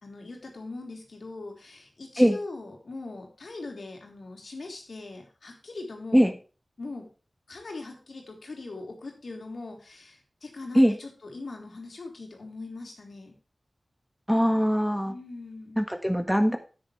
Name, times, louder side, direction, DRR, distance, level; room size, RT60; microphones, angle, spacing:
voice 1, 0.0-6.4 6.8-7.1 7.5-13.3 15.1-15.8, left 3 dB, 80° left, 1 dB, 3.4 m, -41 dB
voice 2, 14.3-15.1 15.8-16.6, equal, ahead, 7 dB, 1.5 m, -21 dB
9.8 x 9.4 x 3.3 m, 0.35 s
cardioid pair, 45°, 0 cm